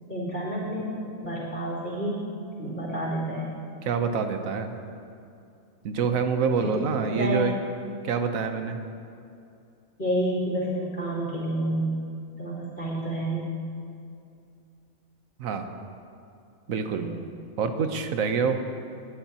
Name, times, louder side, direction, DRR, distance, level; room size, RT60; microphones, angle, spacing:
voice 1, 0.1-2.2 2.6-3.6 6.5-7.5 10.0-11.9 12.4-13.5 16.9-17.3, right 1 dB, 50° left, -8 dB, 3.4 m, -29 dB
voice 2, 3.8-4.7 5.8-7.5 8.0-8.8 15.4-15.7 16.7-17.1 17.6-18.6, right 5 dB, 85° right, 7 dB, 1.3 m, -26 dB
19.5 x 11.5 x 2.9 m, 2.5 s
omnidirectional pair, 1.4 m